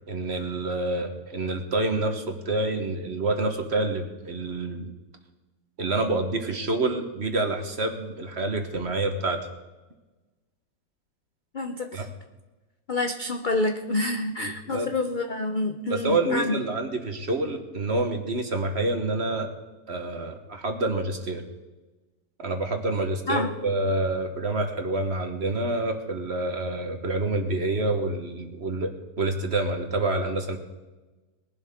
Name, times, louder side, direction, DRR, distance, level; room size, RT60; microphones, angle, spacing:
voice 1, 0.1-4.9 5.8-9.5 11.9-12.1 14.4-14.9 15.9-19.5 19.9-21.4 22.4-30.6, right 2 dB, 40° right, 5 dB, 1.5 m, -27 dB
voice 2, 11.5-12.1 12.9-16.7 23.3-23.5, left 2 dB, 60° left, 5 dB, 0.5 m, -28 dB
21.5 x 11.5 x 3.7 m, 1.2 s
omnidirectional pair, 1.9 m